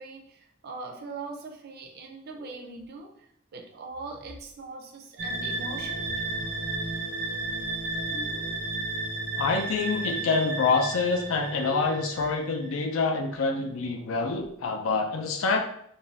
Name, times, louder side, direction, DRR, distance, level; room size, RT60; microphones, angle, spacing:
voice 1, 0.0-6.1, right 3 dB, 50° right, 2 dB, 0.5 m, -41 dB
sound 1, 2.2-2.8 3.9-4.5 5.9-6.6 7.9-8.6 9.9-10.7 11.4-12.3 13.3-14.5, equal, 35° left, 0.7 m, -48 dB
sound 2, 5.2-12.7, right 2 dB, 75° right, 0.8 m, -33 dB
voice 2, 9.4-15.6, left 4 dB, 70° left, 4 dB, 0.4 m, -26 dB
2.5 x 2.2 x 3.2 m, 0.71 s
head